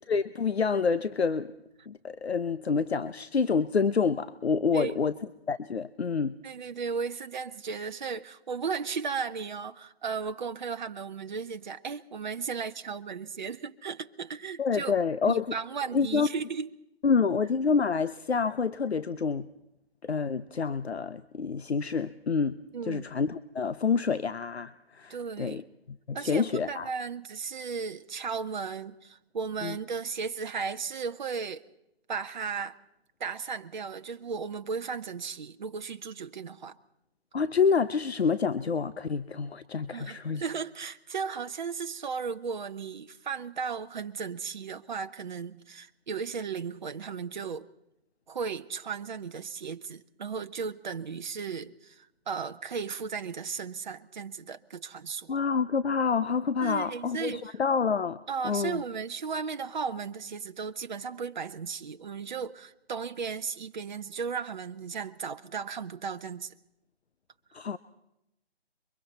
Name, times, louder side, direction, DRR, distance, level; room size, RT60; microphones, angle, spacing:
voice 1, 0.1-1.5 1.9-5.1 5.5-6.4 14.6-15.4 15.9-16.3 17.0-19.5 20.0-22.6 22.9-25.6 26.1-26.9 29.6-29.8 37.3-40.4 55.3-58.2 58.4-58.8 67.5-67.8, left 5 dB, 75° left, 0.8 m, -27 dB
voice 2, 6.4-14.9 15.2-16.7 22.7-23.1 25.1-25.6 26.1-31.6 32.1-32.8 33.2-36.8 39.9-47.7 48.3-55.4 56.6-57.6 58.3-66.5, right 5 dB, 45° right, 0.9 m, -35 dB
27.5 x 23.5 x 4.2 m
figure-of-eight pair, 150°, 32 cm